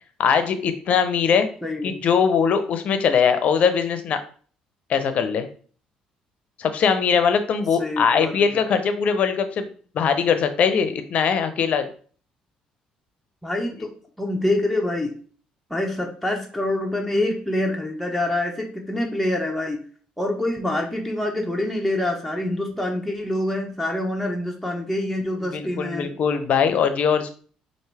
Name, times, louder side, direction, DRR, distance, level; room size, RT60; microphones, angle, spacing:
voice 1, 0.2-1.5 1.8-4.2 4.9-5.5 6.6-9.7 9.9-11.9 25.4-27.3, left 6 dB, 60° left, 9 dB, 0.6 m, -21 dB
voice 2, 1.6-2.0 7.8-8.6 13.4-13.9 14.2-15.1 15.7-19.8 20.2-26.2, left 1 dB, ahead, 0 dB, 0.9 m, -26 dB
4.7 x 2.5 x 3.3 m, 0.43 s
supercardioid pair, 80°, 3 cm